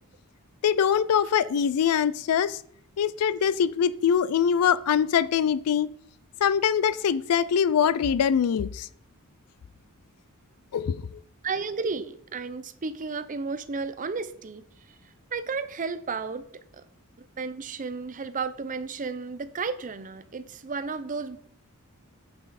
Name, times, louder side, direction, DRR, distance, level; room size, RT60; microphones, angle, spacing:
voice 1, 0.6-2.6 3.0-5.9 6.4-8.9 10.7-11.2, left 8 dB, 85° left, 0.4 m, -23 dB
voice 2, 11.4-15.0 15.3-16.5 16.7-16.8 17.2-21.4, right 4 dB, 35° right, 0.6 m, -33 dB
8.8 x 7.5 x 4.1 m
head